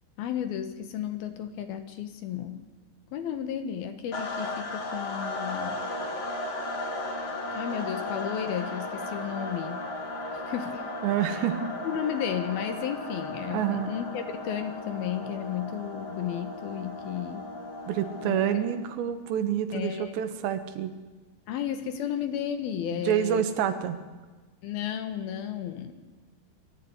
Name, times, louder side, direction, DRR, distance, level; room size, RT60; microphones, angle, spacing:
voice 1, 0.2-2.7 3.1-5.8 7.5-9.8 10.3-10.8 11.2-11.4 11.8-17.5 18.2-18.6 19.7-20.1 21.5-23.4 24.6-25.9, left 9 dB, 70° left, 8 dB, 2.9 m, -33 dB
sound 1, 4.1-18.9, left 2 dB, 40° left, 3.6 m, -36 dB
voice 2, 11.0-11.7 13.5-13.9 17.9-20.9 22.9-24.0, right 9 dB, 80° right, 10 dB, 3.5 m, -28 dB
21.5 x 14.0 x 9.7 m, 1.3 s
omnidirectional pair, 5.0 m